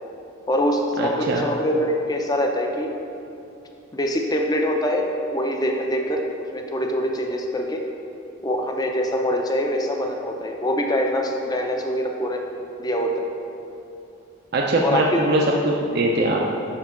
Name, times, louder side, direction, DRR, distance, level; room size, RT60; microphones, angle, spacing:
voice 1, 0.5-2.9 3.9-7.8 8.4-12.4 12.8-13.3 14.8-15.3, equal, 20° left, 3 dB, 0.5 m, -24 dB
voice 2, 1.0-1.4 14.5-16.5, right 2 dB, 50° right, -2 dB, 0.5 m, -21 dB
5.6 x 4.5 x 5.7 m, 2.7 s
head